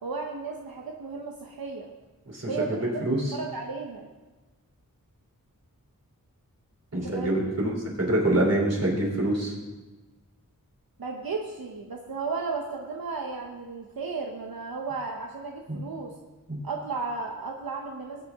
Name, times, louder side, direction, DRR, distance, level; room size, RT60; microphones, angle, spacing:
voice 1, 0.0-1.9 2.5-2.9 3.3-4.1 6.9-7.6 11.0-16.1 16.6-18.2, right 4 dB, 80° right, 1 dB, 1.0 m, -34 dB
voice 2, 3.0-3.3 6.9-9.5 15.7-15.8 16.5-16.6, right 1 dB, 45° right, -2 dB, 3.5 m, -25 dB
20.0 x 8.6 x 3.6 m, 1.2 s
wide cardioid pair, 70°, 35 cm